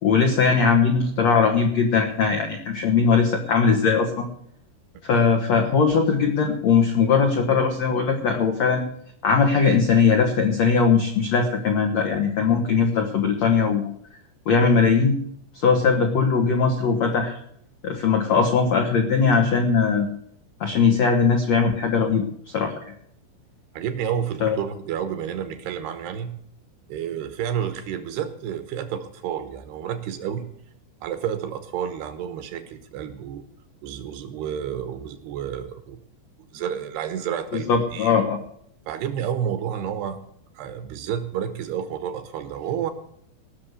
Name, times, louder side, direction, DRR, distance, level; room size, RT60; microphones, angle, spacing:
voice 1, 0.0-4.3 5.0-8.8 9.2-13.9 14.4-15.1 15.5-17.4 17.8-20.1 20.6-22.2 22.5-22.7 24.4-24.6 37.7-38.4, left 5 dB, 90° left, 3 dB, 1.5 m, -20 dB
voice 2, 23.7-26.4 26.9-30.5 31.0-33.4 33.8-36.0 36.5-38.2 38.9-40.2 40.6-42.9, right 9 dB, 75° right, 10 dB, 2.7 m, -30 dB
17.5 x 6.6 x 8.1 m, 0.67 s
omnidirectional pair, 5.4 m